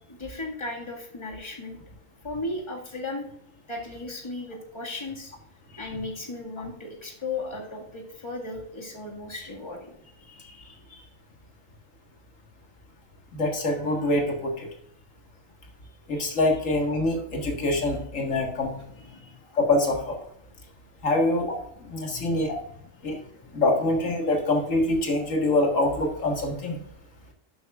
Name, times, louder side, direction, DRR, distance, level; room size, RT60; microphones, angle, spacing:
voice 1, 0.1-1.8 2.2-3.3 3.7-5.3 5.8-9.9 16.1-16.3 19.0-19.4 22.1-22.3 23.1-23.6, left 2 dB, 20° left, -1 dB, 1.9 m, -36 dB
voice 2, 13.3-14.7 16.1-18.7 19.5-20.3 21.0-21.6 21.9-22.6 23.0-23.2 23.5-26.8, left 2 dB, 90° left, 2 dB, 2.0 m, -25 dB
11.5 x 7.7 x 2.4 m, 0.73 s
omnidirectional pair, 1.3 m